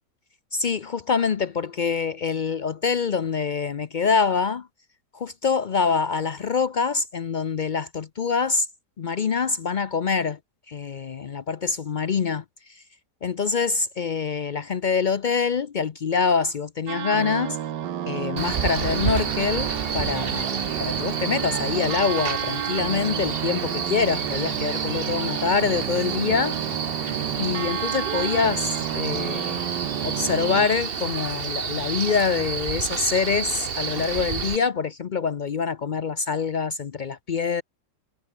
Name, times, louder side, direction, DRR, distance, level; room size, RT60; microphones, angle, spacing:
voice 1, 0.5-4.7 5.1-8.7 9.0-10.4 10.7-12.8 13.2-17.6 18.1-26.6 27.4-29.6 30.0-37.6, left 5 dB, 90° left, 0.4 m, -25 dB
sound 1, 16.9-30.7, right 10 dB, 85° right, 1.7 m, -31 dB
Male speech man speaking, 18.4-34.6, right 6 dB, 40° right, 1.2 m, -30 dB
omnidirectional pair, 1.8 m